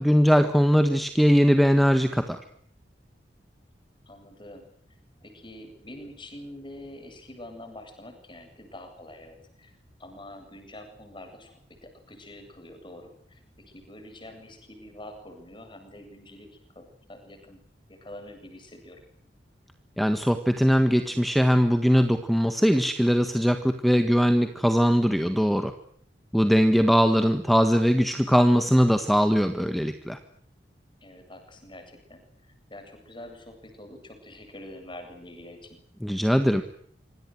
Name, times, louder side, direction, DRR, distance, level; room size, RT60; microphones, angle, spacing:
voice 1, 0.0-2.4 20.0-25.7 26.3-30.2 36.0-36.6, equal, ahead, 8 dB, 1.6 m, -21 dB
voice 2, 4.1-4.7 5.2-17.6 17.9-19.0 31.0-35.8, left 1 dB, 30° left, 6 dB, 7.9 m, -46 dB
26.5 x 25.5 x 8.0 m, 0.62 s
head